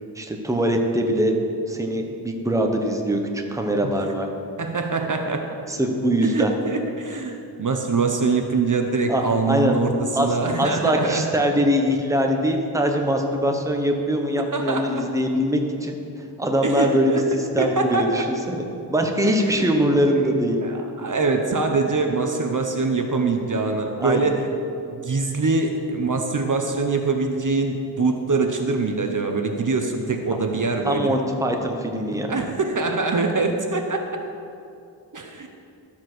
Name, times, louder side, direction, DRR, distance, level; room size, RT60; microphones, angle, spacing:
voice 1, 0.2-1.3 1.7-4.3 5.7-6.5 9.1-9.7 10.1-16.0 16.4-18.6 18.9-20.6 24.0-24.3 30.8-32.3, equal, 5° right, 2 dB, 1.0 m, -22 dB
voice 2, 4.6-5.4 6.2-11.2 14.5-14.9 16.6-17.2 17.6-18.2 19.2-19.7 20.1-20.3 20.6-24.5 24.9-31.2 32.3-34.0 35.1-35.5, right 3 dB, 45° right, 4 dB, 0.9 m, -24 dB
13.0 x 7.5 x 6.2 m, 2.6 s
wide cardioid pair, 120°, 43 cm